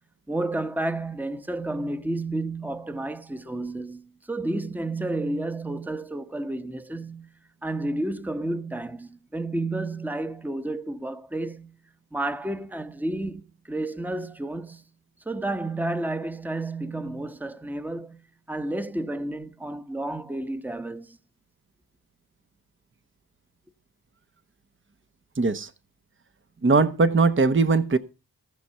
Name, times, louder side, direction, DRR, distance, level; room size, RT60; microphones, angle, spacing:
voice 1, 0.3-7.3 7.6-11.7 12.1-14.8 15.2-18.2 18.5-21.2, right 2 dB, 5° right, 1.1 m, -31 dB
voice 2, 25.4-25.7 26.6-28.0, right 4 dB, 30° right, 1.0 m, -20 dB
18.0 x 6.1 x 5.6 m
cardioid pair, 55°, 38 cm